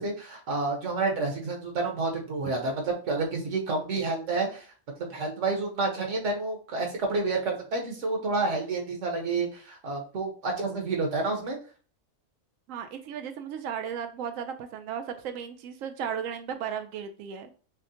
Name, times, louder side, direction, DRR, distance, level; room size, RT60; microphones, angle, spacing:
voice 1, 0.0-4.6 5.0-11.6, right 3 dB, 70° right, 1 dB, 1.4 m, -29 dB
voice 2, 12.7-17.5, right 8 dB, 85° right, 7 dB, 1.0 m, -35 dB
6.4 x 2.2 x 2.7 m, 0.38 s
omnidirectional pair, 1.3 m